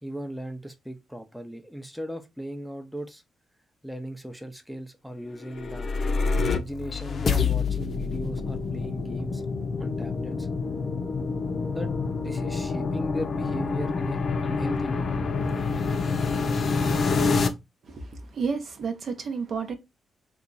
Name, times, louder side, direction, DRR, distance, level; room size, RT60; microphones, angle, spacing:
voice 1, 0.0-3.2 3.8-5.9 6.4-9.4 9.8-10.5 11.7-11.9 12.2-15.1, equal, ahead, 0.6 m, -37 dB
sound 1, 5.4-17.5, left 4 dB, 55° left, 0.5 m, -27 dB
voice 2, 17.8-19.7, right 5 dB, 60° right, 0.7 m, -31 dB
2.9 x 2.3 x 3.8 m
cardioid pair, 70°, 0 cm